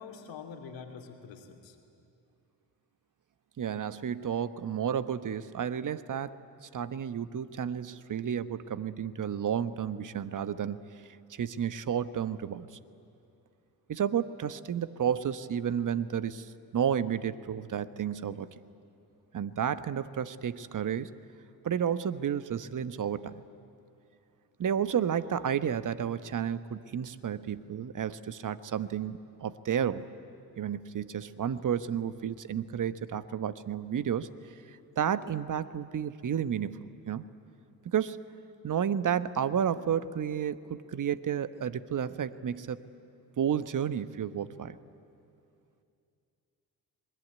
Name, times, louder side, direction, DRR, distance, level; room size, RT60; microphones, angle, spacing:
voice 1, 0.0-1.8, left 6 dB, 70° left, 3 dB, 3.1 m, -45 dB
voice 2, 3.6-6.3 6.6-10.8 11.3-12.7 13.9-18.5 19.3-21.1 21.6-23.4 24.6-30.1 30.6-34.3 35.0-37.3 37.8-38.2 38.6-42.8 43.4-44.8, right 8 dB, 40° right, 13 dB, 1.2 m, -31 dB
26.5 x 21.0 x 9.6 m, 2.6 s
hypercardioid pair, 50°, 46 cm